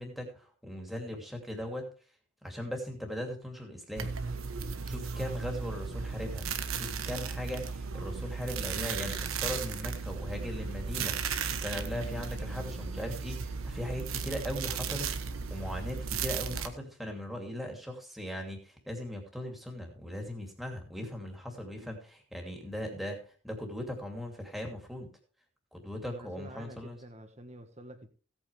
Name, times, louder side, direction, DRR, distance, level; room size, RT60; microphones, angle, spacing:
voice 1, 0.0-1.8 2.4-4.1 4.8-6.5 6.7-11.2 11.6-15.1 15.5-23.2 23.4-25.1 25.7-27.0, equal, ahead, 1 dB, 2.7 m, -39 dB
sound 1, 4.0-16.7, right 5 dB, 85° right, 1.3 m, -35 dB
voice 2, 26.0-28.1, right 1 dB, 30° right, 7 dB, 1.6 m, -48 dB
16.5 x 8.9 x 3.5 m, 0.39 s
head